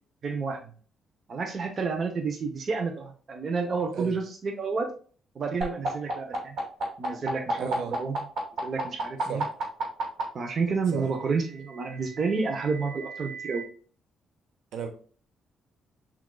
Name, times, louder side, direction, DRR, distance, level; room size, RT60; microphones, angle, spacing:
voice 1, 0.2-0.6 1.3-4.9 5.3-6.6 7.0-8.2 8.6-9.4 10.3-13.6, right 4 dB, 45° right, 4 dB, 0.8 m, -30 dB
sound 1, 5.6-10.2 11.4-13.6, right 4 dB, 60° right, 2.5 m, -33 dB
voice 2, 7.6-7.9 9.3-9.5 10.9-11.4 14.7-14.9, right 5 dB, 80° right, 5 dB, 1.1 m, -35 dB
6.0 x 3.8 x 2.3 m, 0.41 s
cardioid pair, 90°, 0 cm